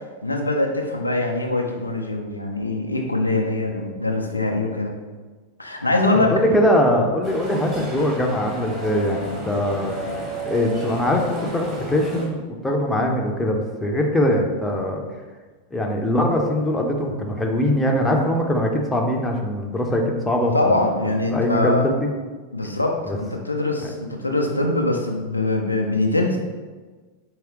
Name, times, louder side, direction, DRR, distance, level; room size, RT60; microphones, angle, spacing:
voice 1, 0.2-4.9 5.6-6.3 20.5-21.9 22.5-26.4, left 2 dB, 85° left, 1 dB, 0.5 m, -23 dB
voice 2, 6.1-9.9 10.4-15.0 15.7-20.9 21.3-22.1 23.1-23.2 23.8-23.9, left 1 dB, 10° left, 1 dB, 0.6 m, -22 dB
sound 1, 7.2-12.3, right 2 dB, 30° right, 1.3 m, -33 dB
4.7 x 3.2 x 3.0 m, 1.3 s
figure-of-eight pair, 90°, 0 cm